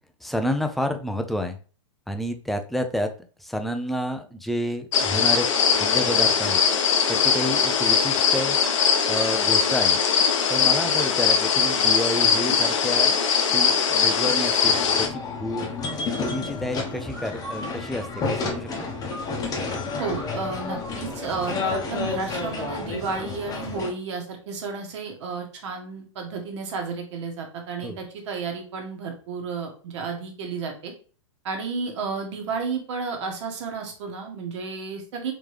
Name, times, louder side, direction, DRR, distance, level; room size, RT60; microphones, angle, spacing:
voice 1, 0.2-1.6 2.1-3.1 3.4-5.5 5.7-6.6 7.1-8.6 9.1-10.0 10.5-13.2 13.5-15.7 16.2-18.8 27.8-28.0, equal, ahead, 6 dB, 0.4 m, -29 dB
sound 1, 4.9-15.1, left 6 dB, 65° left, 0.7 m, -21 dB
sound 2, 14.2-14.8 17.1-19.8 20.1-20.3 20.5-21.5, right 1 dB, 75° right, 1.5 m, -40 dB
sound 3, 14.6-23.9, left 4 dB, 20° left, 0.9 m, -31 dB
voice 2, 20.0-30.9 31.4-35.3, right 4 dB, 60° right, 3 dB, 1.3 m, -32 dB
3.6 x 3.2 x 3.2 m, 0.39 s
hypercardioid pair, 110°, 17 cm